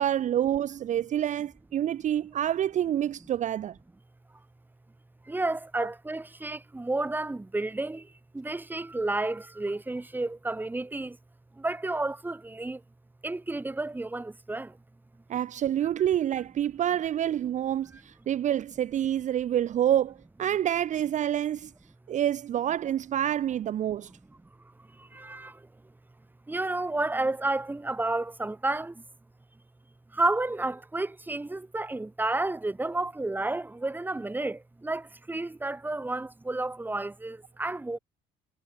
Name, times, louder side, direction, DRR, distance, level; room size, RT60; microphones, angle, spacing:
voice 1, 0.0-3.8 15.3-21.7 22.1-24.1, right 11 dB, 45° right, 0.6 m, -27 dB
voice 2, 5.3-8.0 8.3-11.2 11.6-12.8 13.2-14.7 25.1-25.5 26.5-28.9 30.1-38.0, right 2 dB, 10° right, 1.7 m, -31 dB
cardioid pair, 110°, 17 cm